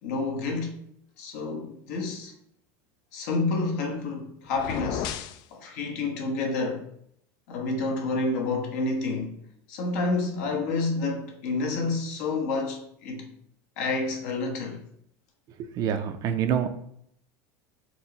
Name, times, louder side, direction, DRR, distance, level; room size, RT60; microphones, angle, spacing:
voice 1, 0.0-0.8 1.2-2.3 3.1-5.1 5.5-6.8 7.5-9.4 9.7-13.3 13.8-14.8, left 3 dB, 75° left, 1.1 m, -29 dB
sound 1, 4.5-5.4, left 9 dB, 55° left, 0.3 m, -33 dB
voice 2, 15.6-16.7, right 8 dB, 45° right, 0.5 m, -26 dB
4.5 x 3.1 x 2.9 m
supercardioid pair, 115°, 9 cm